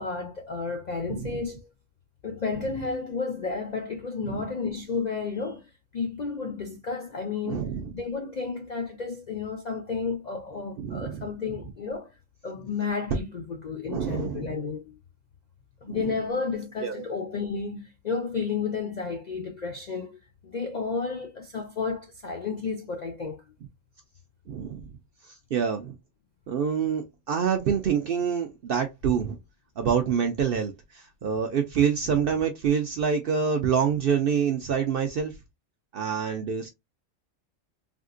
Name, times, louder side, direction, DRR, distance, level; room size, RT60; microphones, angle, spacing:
voice 1, 0.0-1.7 2.2-5.7 5.9-7.7 7.9-12.1 12.4-15.0 15.8-23.4, left 4 dB, 60° left, 0.4 m, -32 dB
voice 2, 7.5-7.9 10.8-11.3 13.9-14.5 15.9-16.1 16.8-17.0 24.5-24.8 25.5-25.9 26.5-29.4 29.8-35.3 35.9-36.7, right 7 dB, 65° right, 0.6 m, -26 dB
3.5 x 2.4 x 2.4 m
omnidirectional pair, 1.4 m